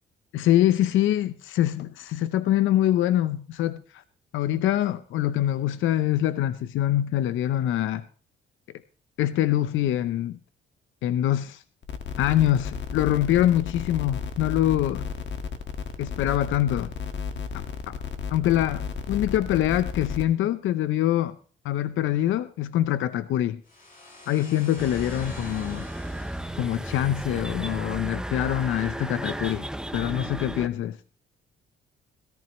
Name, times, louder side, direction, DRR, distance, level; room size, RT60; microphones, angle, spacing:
voice 1, 0.3-4.0 4.3-8.1 9.2-10.4 11.0-11.6 12.2-15.0 16.0-16.9 17.5-18.0 18.3-21.4 21.6-23.6 24.3-25.9 26.6-29.7 29.9-31.0, left 12 dB, 80° left, 14 dB, 0.7 m, -24 dB
sound 1, 11.8-20.2, left 6 dB, 65° left, 1.6 m, -33 dB
sound 2, 23.7-27.4, left 2 dB, 45° left, 5.0 m, -47 dB
sound 3, 24.8-30.7, right 1 dB, 5° right, 0.6 m, -34 dB
17.0 x 14.0 x 3.0 m, 0.39 s
cardioid pair, 90°, 20 cm